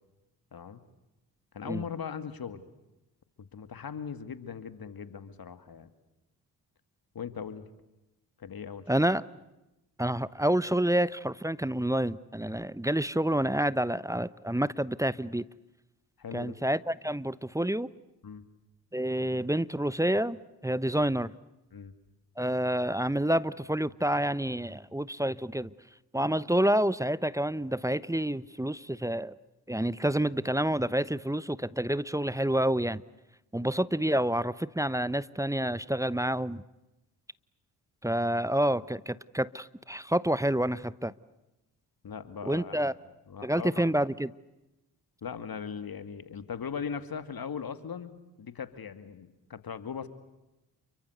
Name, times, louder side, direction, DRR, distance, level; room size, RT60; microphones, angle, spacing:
voice 1, 0.5-0.8 1.5-2.7 3.4-5.9 7.1-7.7 8.4-9.0 16.2-16.5 18.2-18.4 21.7-21.9 42.0-42.9 43.3-43.9 45.2-50.1, left 6 dB, 50° left, 2.3 m, -39 dB
voice 2, 8.9-9.2 10.0-15.4 16.3-17.9 18.9-21.3 22.4-25.7 26.1-29.3 29.7-33.0 33.5-36.6 38.0-41.1 42.5-42.9 43.4-44.3, right 1 dB, 5° right, 0.9 m, -28 dB
29.5 x 23.5 x 8.0 m
hypercardioid pair, 45°, 45 cm